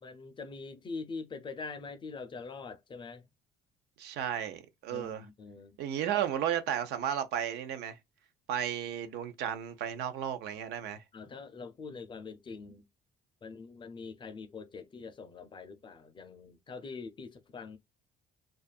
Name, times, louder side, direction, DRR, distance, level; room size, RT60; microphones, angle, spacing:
voice 1, 0.0-3.2 4.9-5.8 11.1-12.9 13.4-17.8, left 4 dB, 30° left, 0.4 m, -44 dB
voice 2, 4.0-5.3 5.8-8.0 8.5-11.0, right 9 dB, 80° right, 0.5 m, -33 dB
2.6 x 2.4 x 2.3 m
cardioid pair, 110°, 17 cm